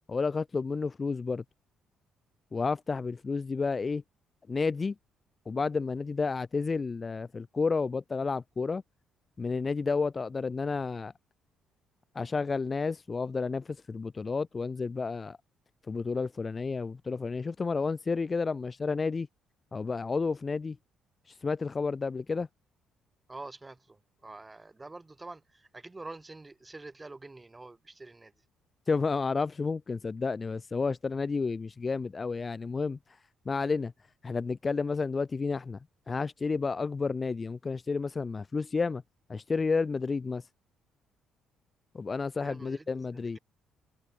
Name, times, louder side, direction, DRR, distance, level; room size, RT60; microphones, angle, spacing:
voice 1, 0.1-1.4 2.5-4.0 4.5-4.9 5.5-8.8 9.4-11.1 12.2-15.4 15.9-19.3 19.7-20.8 21.3-22.5 28.9-33.0 33.5-33.9 34.2-35.8 36.1-39.0 39.3-40.4 41.9-43.4, left 4 dB, 20° left, 0.3 m, -31 dB
voice 2, 23.3-28.3 42.4-43.4, right 2 dB, 15° right, 1.6 m, -46 dB
cardioid pair, 150°, 0 cm